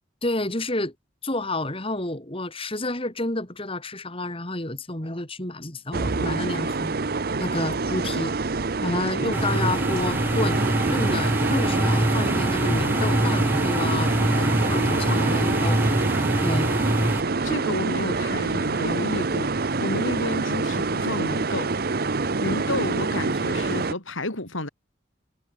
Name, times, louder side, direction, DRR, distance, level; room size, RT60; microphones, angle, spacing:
voice 1, 0.2-0.9 1.2-7.0 7.4-8.3 8.8-10.6 10.9-15.9 16.4-16.7, left 2 dB, 30° left, 3.7 m, -30 dB
sound 1, 5.9-23.9, right 3 dB, 50° right, 0.8 m, -26 dB
sound 2, 9.3-17.2, right 1 dB, 10° right, 1.1 m, -24 dB
voice 2, 17.4-21.8 22.1-24.7, left 2 dB, 85° left, 6.3 m, -31 dB
head